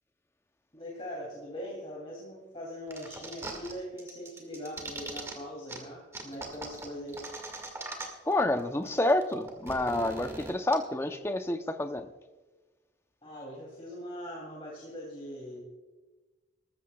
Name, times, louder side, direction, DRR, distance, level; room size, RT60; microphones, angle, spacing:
voice 1, 0.7-7.2 13.2-15.6, equal, 30° left, -4 dB, 2.7 m, -41 dB
sound 1, 2.9-3.7 4.0-5.3 5.7-5.8 6.1-8.3 8.6-8.7 8.9-10.7, right 2 dB, 15° right, 1.9 m, -40 dB
voice 2, 8.3-12.1, left 1 dB, 15° left, 8 dB, 0.6 m, -28 dB
20.0 x 14.5 x 2.3 m, 1.2 s
head